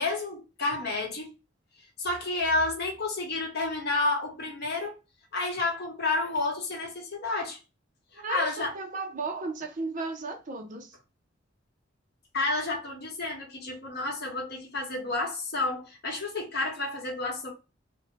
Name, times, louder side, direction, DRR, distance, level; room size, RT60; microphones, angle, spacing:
voice 1, 0.0-1.3 2.0-5.0 5.3-7.6 8.1-8.7 12.3-17.5, left 2 dB, 55° left, 0.9 m, -30 dB
voice 2, 8.1-11.0, right 3 dB, 45° right, 0.5 m, -35 dB
2.6 x 2.1 x 3.1 m
head